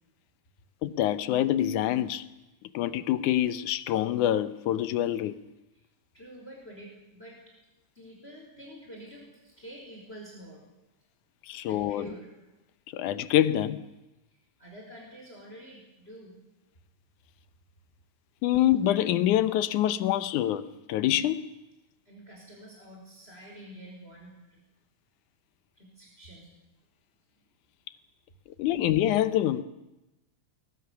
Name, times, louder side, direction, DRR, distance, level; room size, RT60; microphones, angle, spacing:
voice 1, 0.8-2.3 2.7-5.4 11.5-12.1 12.9-13.8 18.4-21.4 28.6-29.6, left 12 dB, 85° left, 2.4 m, -26 dB
voice 2, 6.1-7.4 7.9-10.7 11.6-12.3 14.6-16.4 22.0-24.6 25.7-26.5, equal, 20° left, 5.0 m, -47 dB
23.0 x 20.5 x 6.9 m
omnidirectional pair, 3.4 m